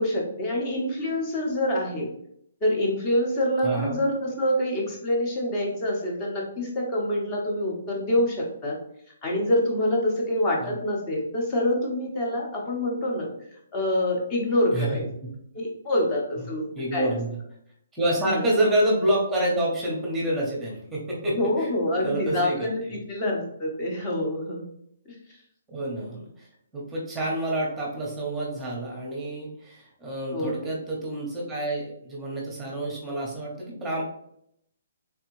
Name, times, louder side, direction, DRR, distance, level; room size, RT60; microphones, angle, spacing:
voice 1, 0.0-2.1 2.6-8.8 9.2-13.3 13.7-15.1 15.5-16.7 16.9-17.2 18.2-18.5 21.3-24.7 30.3-30.7, left 1 dB, 25° left, -1 dB, 1.1 m, -26 dB
voice 2, 3.6-4.0 10.6-10.8 14.7-14.9 16.7-17.4 17.9-21.7 22.0-23.0 25.7-26.5 26.7-34.0, right 1 dB, 10° right, -4 dB, 1.0 m, -28 dB
3.5 x 3.2 x 3.1 m, 0.72 s
hypercardioid pair, 160°, 0 cm